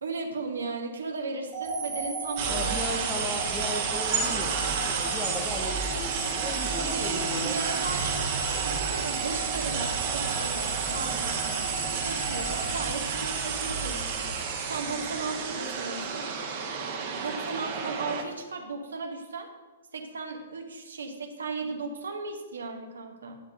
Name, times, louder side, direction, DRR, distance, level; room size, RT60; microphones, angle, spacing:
voice 1, 0.0-3.5 6.8-11.4 12.0-14.3 14.6-16.3 17.1-19.5 19.9-23.4, right 4 dB, 70° right, 4 dB, 1.0 m, -36 dB
sound 1, 1.5-13.7, right 4 dB, 25° right, 1.4 m, -36 dB
sound 2, 2.4-18.2, right 5 dB, 40° right, 1.1 m, -31 dB
voice 2, 2.5-7.6, left 2 dB, 10° left, 2 dB, 1.0 m, -37 dB
9.6 x 3.7 x 6.2 m, 1.3 s
figure-of-eight pair, 115°, 0 cm